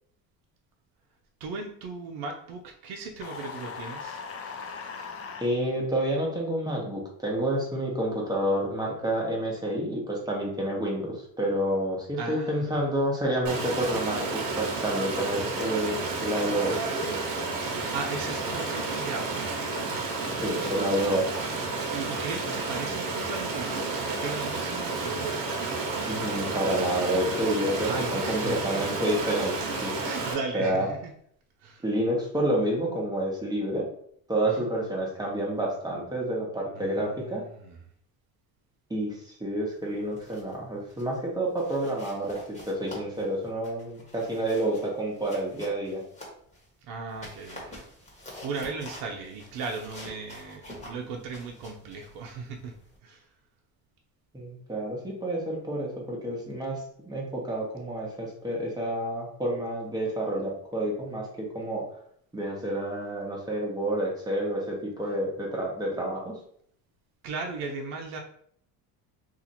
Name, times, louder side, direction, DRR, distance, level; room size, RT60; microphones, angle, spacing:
voice 1, 1.4-4.2 12.2-12.8 17.8-19.5 21.7-25.4 27.9-28.8 30.0-31.1 31.6-31.8 34.4-34.7 36.7-37.8 46.8-47.9 48.4-52.7 53.0-53.3 65.0-65.2 67.2-68.2, right 4 dB, 90° right, 2 dB, 0.6 m, -37 dB
sound 1, 3.2-5.5, left 5 dB, 35° left, 0.5 m, -39 dB
voice 2, 5.4-16.8 20.3-21.3 26.1-29.9 30.5-30.9 31.8-33.9 34.3-37.4 38.9-46.0 54.3-61.8 62.3-66.3, right 1 dB, 10° right, -3 dB, 1.0 m, -29 dB
Stream, 13.4-30.3, right 3 dB, 60° right, 1.1 m, -31 dB
sound 2, 39.9-40.6 40.9-41.2 41.6-46.7 47.1-53.0, left 1 dB, 15° left, 1.3 m, -47 dB
2.8 x 2.4 x 4.1 m, 0.65 s
cardioid pair, 120°, 39 cm